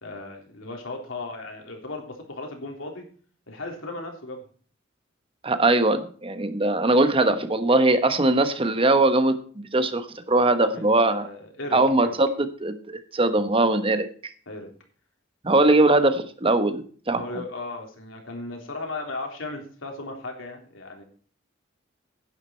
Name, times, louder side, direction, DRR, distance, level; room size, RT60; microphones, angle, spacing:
voice 1, 0.0-3.0 3.5-4.4 10.7-12.2 14.5-14.7 17.1-21.0, left 2 dB, 90° left, 2 dB, 3.4 m, -36 dB
voice 2, 5.4-11.3 11.7-12.3 12.6-12.7 13.1-14.3 15.4-17.2, right 2 dB, 30° right, 9 dB, 1.2 m, -21 dB
10.5 x 9.8 x 4.5 m, 0.43 s
head